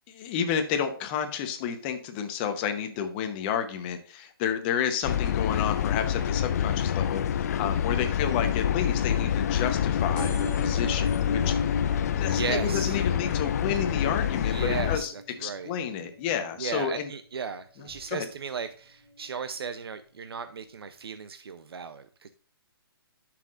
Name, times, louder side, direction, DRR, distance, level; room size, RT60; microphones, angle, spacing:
voice 1, 0.1-11.8 12.1-15.1 15.4-17.1 18.1-18.3, left 8 dB, 25° left, 7 dB, 0.9 m, -31 dB
sound 1, 5.0-15.0, left 9 dB, 40° left, 0.4 m, -27 dB
sound 2, 10.1-17.4 17.9-18.3 19.2-19.3 19.5-19.6 19.8-19.9, left 1 dB, 10° left, 4.5 m, -39 dB
voice 2, 12.3-13.0 14.4-15.7 16.6-22.3, right 6 dB, 80° right, 10 dB, 0.7 m, -36 dB
11.5 x 5.9 x 2.5 m, 0.43 s
hypercardioid pair, 155°, 13 cm